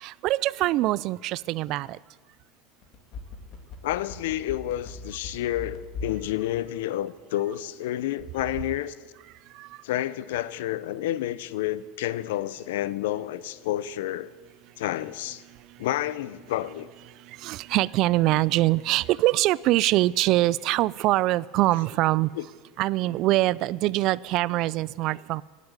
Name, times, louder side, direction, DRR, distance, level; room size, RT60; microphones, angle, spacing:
voice 1, 0.0-1.9 9.6-9.7 17.4-22.3 22.8-25.4, right 17 dB, 55° right, 22 dB, 0.4 m, -23 dB
sound 1, 2.8-6.2 6.5-6.6, left 3 dB, 50° left, 2.8 m, -38 dB
voice 2, 3.8-9.0 9.8-14.3 14.8-15.4 15.8-16.9 22.3-22.5, left 13 dB, 80° left, 17 dB, 0.7 m, -30 dB
16.5 x 8.4 x 9.7 m, 1.4 s
supercardioid pair, 125°, 0 cm